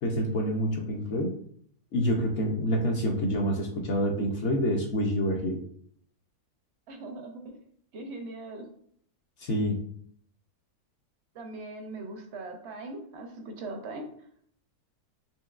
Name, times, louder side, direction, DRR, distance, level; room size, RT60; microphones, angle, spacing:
voice 1, 0.0-1.3 1.9-5.6 9.4-9.8, equal, 65° left, 1 dB, 0.7 m, -27 dB
voice 2, 6.9-7.6 7.9-8.7 11.3-14.3, right 2 dB, 60° right, 4 dB, 0.7 m, -40 dB
4.5 x 2.9 x 2.3 m, 0.62 s
omnidirectional pair, 1.6 m